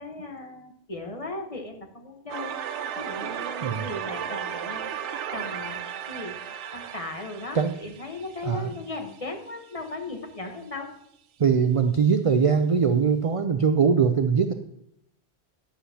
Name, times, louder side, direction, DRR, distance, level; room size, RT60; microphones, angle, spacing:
voice 1, 0.0-2.6 2.9-4.9 5.3-5.8 6.1-6.3 6.7-10.9, left 2 dB, 30° left, 3 dB, 1.2 m, -37 dB
sound 1, 2.3-9.2, right 8 dB, 90° right, 0.9 m, -35 dB
voice 2, 11.4-14.5, right 6 dB, 55° right, 8 dB, 0.4 m, -21 dB
11.5 x 9.8 x 2.8 m, 0.77 s
omnidirectional pair, 1.2 m